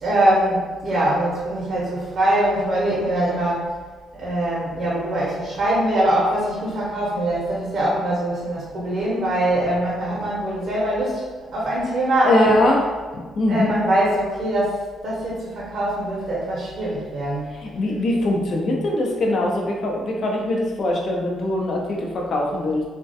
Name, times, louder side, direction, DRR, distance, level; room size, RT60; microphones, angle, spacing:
voice 1, 0.0-3.6 4.2-11.3 11.5-12.5 13.5-14.8 15.0-17.5, right 1 dB, 60° right, -6 dB, 0.6 m, -22 dB
voice 2, 12.2-12.8 13.4-13.7 17.5-22.8, left 1 dB, 55° left, -1 dB, 0.5 m, -22 dB
2.3 x 2.1 x 2.6 m, 1.4 s
cardioid pair, 90°, 0 cm